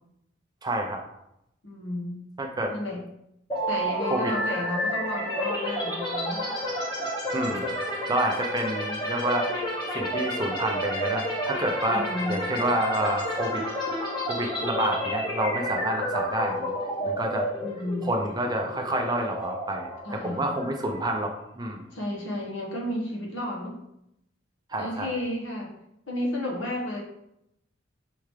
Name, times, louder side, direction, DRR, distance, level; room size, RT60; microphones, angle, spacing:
voice 1, 0.6-1.0 2.4-2.7 4.0-4.3 7.3-7.7 8.1-9.5 9.9-13.6 14.3-16.7 17.1-17.5 18.0-21.8 24.7-25.1, right 1 dB, 20° right, 3 dB, 0.5 m, -28 dB
voice 2, 1.6-2.2 2.7-3.0 3.7-6.5 11.9-12.4 17.6-18.1 20.0-20.6 21.9-23.8 24.8-25.7 26.1-27.0, left 1 dB, 70° left, -2 dB, 1.1 m, -32 dB
sound 1, 3.5-21.3, equal, 25° left, 1.1 m, -30 dB
4.8 x 3.4 x 3.2 m, 0.81 s
head